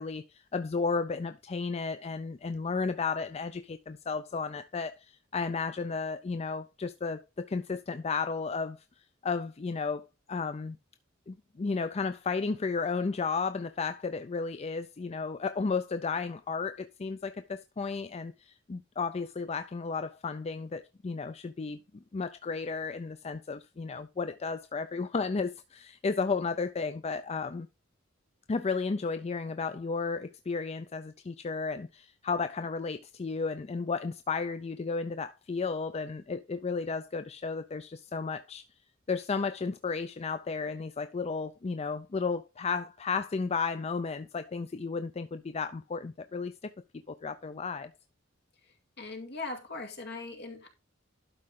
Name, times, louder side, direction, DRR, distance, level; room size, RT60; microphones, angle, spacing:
voice 1, 0.0-8.8 9.2-10.8 11.3-21.8 22.1-27.7 28.5-38.6 39.1-46.7 47.1-47.9, left 4 dB, 35° left, 0.4 m, -33 dB
voice 2, 49.0-50.7, left 3 dB, 60° left, 2.3 m, -39 dB
12.0 x 4.7 x 3.7 m
head